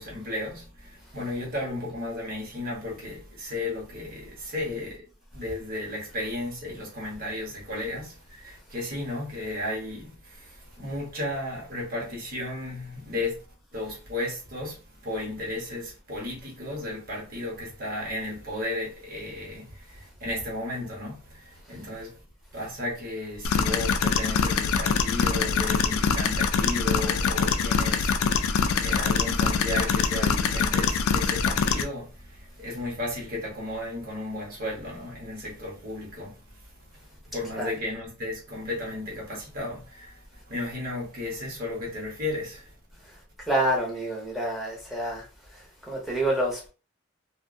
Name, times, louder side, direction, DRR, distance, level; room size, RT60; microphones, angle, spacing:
voice 1, 0.0-5.0 5.3-13.4 13.7-22.2 22.5-28.5 28.8-36.6 37.3-42.8, left 1 dB, 40° right, 1.0 m, -34 dB
sound 1, 23.4-31.8, left 5 dB, 70° left, 0.3 m, -24 dB
voice 2, 43.5-45.2 45.8-46.7, right 1 dB, ahead, 0.7 m, -27 dB
2.4 x 2.1 x 2.5 m
head